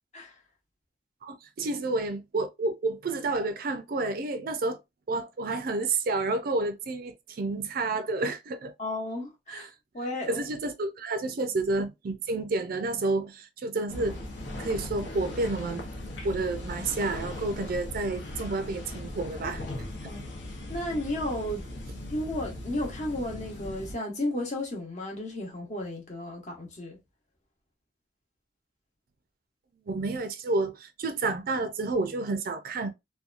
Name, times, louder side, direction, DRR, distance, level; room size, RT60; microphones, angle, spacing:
voice 1, 1.2-4.8 5.1-8.7 9.5-9.7 10.3-14.2 14.6-15.8 16.2-19.6 29.9-32.9, right 3 dB, 55° right, 0.4 m, -30 dB
voice 2, 8.8-9.7 9.9-10.4 20.1-20.3 20.7-21.7 22.1-27.0, left 1 dB, 40° left, 1.0 m, -33 dB
sound 1, 13.9-24.0, left 1 dB, 75° left, 0.8 m, -38 dB
2.7 x 2.2 x 2.4 m
head